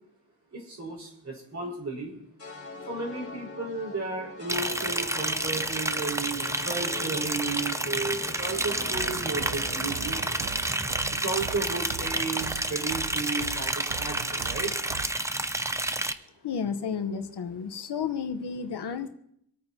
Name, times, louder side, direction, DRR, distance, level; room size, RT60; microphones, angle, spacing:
voice 1, 0.5-2.1 2.9-10.4 11.1-14.7, right 3 dB, 45° right, -3 dB, 4.5 m, -34 dB
sound 1, 2.4-11.7, left 3 dB, 35° left, 3.1 m, -42 dB
Liquid, 4.5-16.1, right 1 dB, 10° right, 0.4 m, -30 dB
sound 2, 8.9-15.1, right 10 dB, 70° right, 0.6 m, -40 dB
voice 2, 16.4-19.1, left 6 dB, 90° left, 8 dB, 1.2 m, -32 dB
26.5 x 8.9 x 2.9 m, 0.72 s
wide cardioid pair, 150°, 39 cm